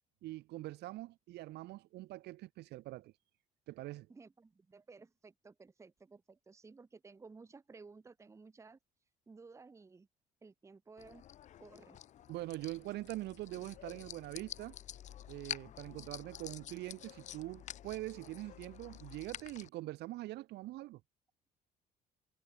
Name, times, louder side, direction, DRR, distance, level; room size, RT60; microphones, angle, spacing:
voice 1, 0.2-3.1 3.7-4.1 12.3-14.8 15.3-21.0, right 17 dB, 80° right, 1.3 m, -43 dB
voice 2, 4.1-8.8 9.3-10.1 10.4-11.2 11.6-12.0, right 4 dB, 15° right, 0.8 m, -56 dB
sound 1, 11.0-19.7, left 11 dB, 45° left, 0.4 m, -49 dB
cardioid pair, 110°, 17 cm